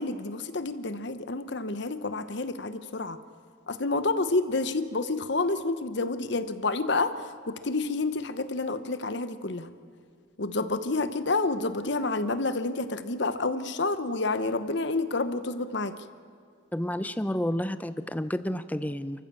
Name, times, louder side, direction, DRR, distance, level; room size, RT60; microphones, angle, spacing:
voice 1, 0.0-3.2 3.7-7.1 7.5-9.7 10.4-15.9, left 3 dB, 55° left, 11 dB, 1.0 m, -29 dB
voice 2, 16.7-19.2, equal, 10° left, 12 dB, 0.6 m, -30 dB
29.5 x 14.5 x 7.5 m, 2.1 s
head